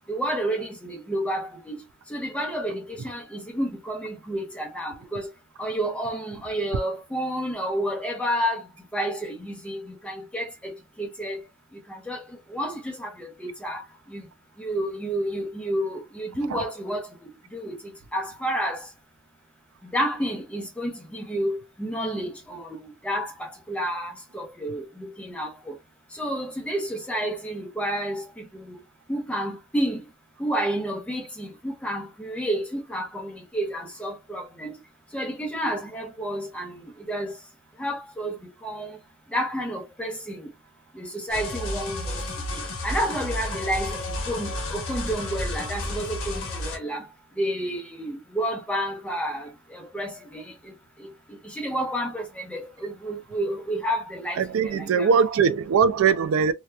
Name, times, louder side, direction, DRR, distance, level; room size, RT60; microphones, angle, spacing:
voice 1, 0.1-1.8 2.1-5.3 5.6-8.6 8.9-11.4 12.1-12.2 12.5-13.8 14.1-14.2 14.6-17.1 17.5-17.7 18.1-18.8 19.9-22.6 23.0-23.3 23.7-25.5 26.2-28.2 28.7-28.8 29.1-30.0 30.4-34.7 35.1-36.7 37.1-37.3 37.8-38.3 38.6-38.9 39.3-40.4 41.0-42.2 42.8-47.0 47.4-50.1 51.5-55.1, equal, 5° left, 0.6 m, -30 dB
sound 1, 41.3-46.8, left 1 dB, 65° left, 1.0 m, -31 dB
voice 2, 54.3-56.5, right 6 dB, 75° right, 0.3 m, -21 dB
2.8 x 2.1 x 2.2 m
head